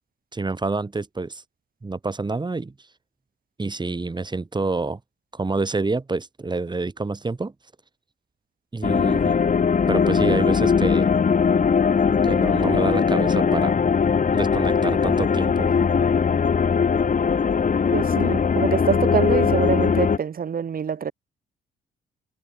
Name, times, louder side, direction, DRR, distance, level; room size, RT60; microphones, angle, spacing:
voice 1, 0.3-1.4 1.8-2.7 3.6-5.0 5.3-7.5 8.7-9.4 9.9-11.1 12.2-13.8 14.3-15.7, right 3 dB, 20° right, 4.3 m, -27 dB
sound 1, 8.8-20.2, left 6 dB, 40° left, 4.0 m, -20 dB
voice 2, 17.9-21.1, right 7 dB, 45° right, 2.8 m, -25 dB
cardioid pair, 90°, 20 cm